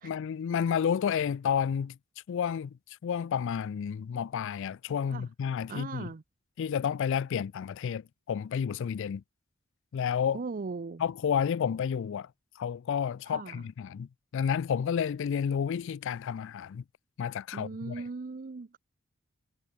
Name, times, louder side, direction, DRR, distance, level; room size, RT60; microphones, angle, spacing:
voice 1, 0.0-2.0 2.3-6.1 6.6-9.2 9.9-10.4 11.0-12.3 12.6-16.8 17.2-18.0, left 7 dB, 60° left, 0.3 m, -31 dB
voice 2, 5.7-6.2 10.3-11.0 13.3-13.7 17.5-18.8, right 4 dB, 40° right, 0.5 m, -38 dB
head